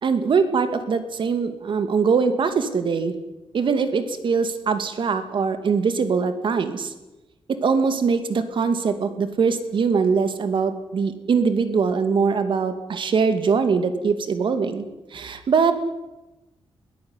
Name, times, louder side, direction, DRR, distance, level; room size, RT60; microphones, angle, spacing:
voice 1, 0.0-3.1 3.5-6.9 7.5-14.8 15.1-15.7, right 5 dB, 50° right, 10 dB, 2.5 m, -22 dB
22.0 x 16.5 x 9.8 m, 1.0 s
wide cardioid pair, 150°, 10 cm